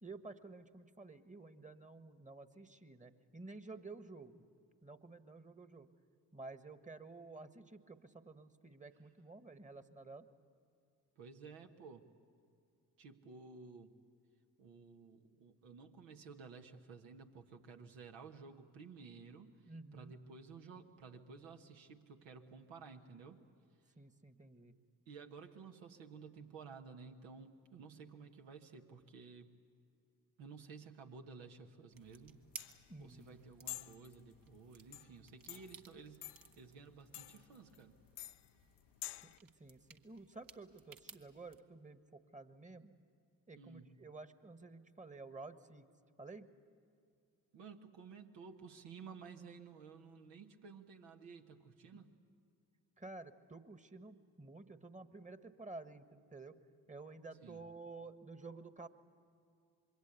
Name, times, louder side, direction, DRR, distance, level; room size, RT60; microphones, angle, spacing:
voice 1, 0.0-4.5 4.8-5.9 6.3-10.3 19.7-20.1 24.0-24.7 32.9-33.4 39.4-42.9 43.5-45.9 46.2-46.5 51.9-52.0 53.0-56.6 56.9-58.9, right 3 dB, 15° right, 11 dB, 1.5 m, -52 dB
voice 2, 11.2-12.1 13.0-13.9 14.6-23.4 25.1-29.5 30.4-32.4 33.0-38.0 43.5-43.9 47.5-52.1 57.4-57.6, right 5 dB, 75° right, 4 dB, 1.5 m, -54 dB
sound 1, 31.9-41.6, right 6 dB, 45° right, 1.5 m, -59 dB
sound 2, 32.0-39.4, left 16 dB, 65° left, 0.6 m, -51 dB
26.0 x 22.0 x 8.3 m, 2.4 s
hypercardioid pair, 40°, 45 cm